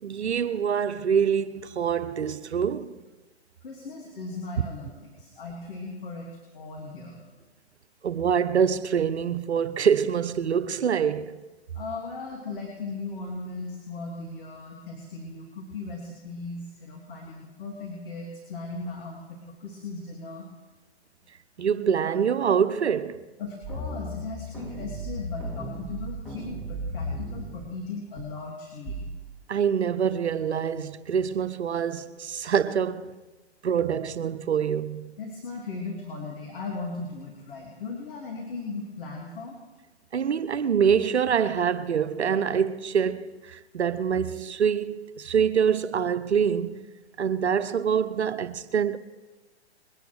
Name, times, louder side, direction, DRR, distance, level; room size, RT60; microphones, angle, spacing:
voice 1, 0.0-3.0 8.0-11.4 21.6-23.3 29.5-33.2 33.6-35.1 40.1-46.9 47.2-49.0, right 7 dB, 80° right, 1.0 m, -25 dB
voice 2, 3.6-7.2 11.7-20.5 23.4-29.1 35.2-39.6, left 3 dB, 55° left, 3.4 m, -37 dB
sound 1, 23.6-27.7 28.2-28.3 28.9-29.3, equal, 5° left, 2.8 m, -35 dB
22.0 x 10.0 x 6.4 m
hypercardioid pair, 130°, 33 cm